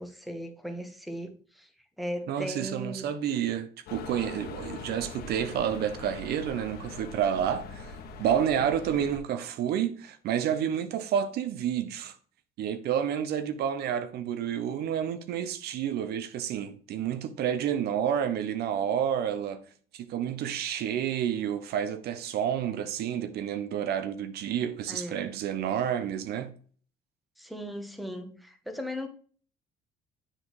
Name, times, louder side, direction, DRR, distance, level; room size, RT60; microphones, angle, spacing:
voice 1, 0.0-1.7 2.0-3.1 24.9-25.3 27.4-29.1, equal, ahead, 1.1 m, -37 dB
voice 2, 2.3-7.9 8.2-12.1 12.6-19.6 19.9-26.5, right 9 dB, 70° right, 0.7 m, -29 dB
sound 1, 3.9-9.2, left 4 dB, 65° left, 1.2 m, -42 dB
10.0 x 3.6 x 3.2 m
cardioid pair, 110°, 17 cm